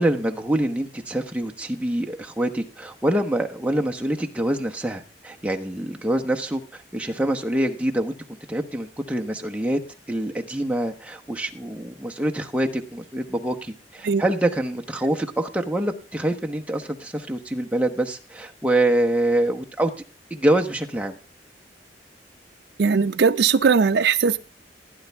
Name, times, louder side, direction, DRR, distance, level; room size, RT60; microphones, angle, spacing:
voice 1, 0.0-8.1 8.5-9.8 10.1-19.9 20.3-21.2, right 1 dB, 10° right, 2 dB, 1.0 m, -25 dB
voice 2, 22.8-24.4, right 5 dB, 65° right, 8 dB, 0.5 m, -19 dB
16.5 x 9.6 x 3.5 m, 0.35 s
head